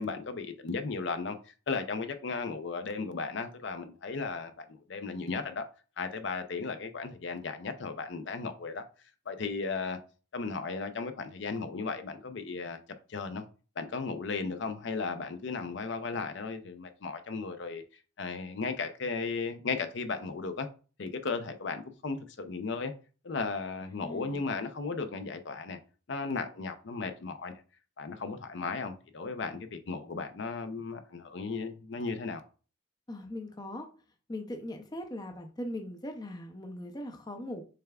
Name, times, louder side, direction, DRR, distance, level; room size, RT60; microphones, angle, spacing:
voice 1, 0.0-1.4 1.7-5.6 6.0-8.8 9.3-10.0 10.3-12.8 13.1-13.4 13.8-17.8 18.2-20.7 21.0-22.9 23.2-25.8 26.1-27.6 28.0-32.4, left 4 dB, 60° left, 0.5 m, -35 dB
voice 2, 23.8-24.4 33.1-33.9 34.3-37.6, left 1 dB, 20° left, 0.5 m, -40 dB
6.7 x 3.4 x 2.3 m
head